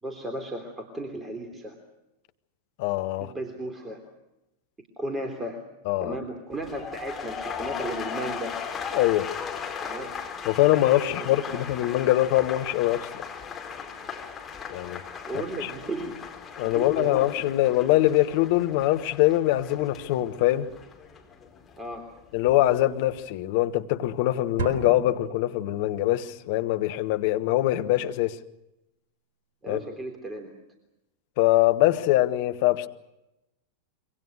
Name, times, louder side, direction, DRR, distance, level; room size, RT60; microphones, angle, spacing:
voice 1, 0.0-1.8 3.2-4.0 5.0-5.6 6.0-8.6 9.8-10.1 11.2-11.6 15.3-16.3 16.6-17.5 21.8-22.1 29.6-30.5, right 1 dB, 15° right, 3.4 m, -35 dB
voice 2, 2.8-3.3 5.9-6.2 8.9-9.3 10.5-13.1 14.7-15.0 15.6-15.7 16.6-20.7 22.3-28.4 29.7-29.8 31.4-32.9, left 15 dB, 50° left, 1.2 m, -23 dB
sound 1, 6.5-22.6 22.9-23.3, left 6 dB, 20° left, 4.8 m, -38 dB
sound 2, 24.6-26.3, right 6 dB, 50° right, 4.2 m, -36 dB
26.5 x 24.0 x 6.5 m
figure-of-eight pair, 90°, 0 cm